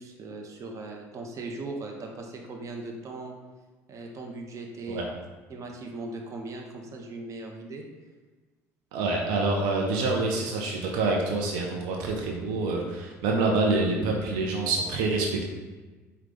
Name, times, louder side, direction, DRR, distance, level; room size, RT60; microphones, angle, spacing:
voice 1, 0.0-3.3 3.9-5.1 5.5-7.8, right 2 dB, 40° right, 2 dB, 0.7 m, -38 dB
voice 2, 8.9-15.5, right 3 dB, 75° right, 0 dB, 0.6 m, -26 dB
4.7 x 2.3 x 3.8 m, 1.3 s
hypercardioid pair, 70°, 8 cm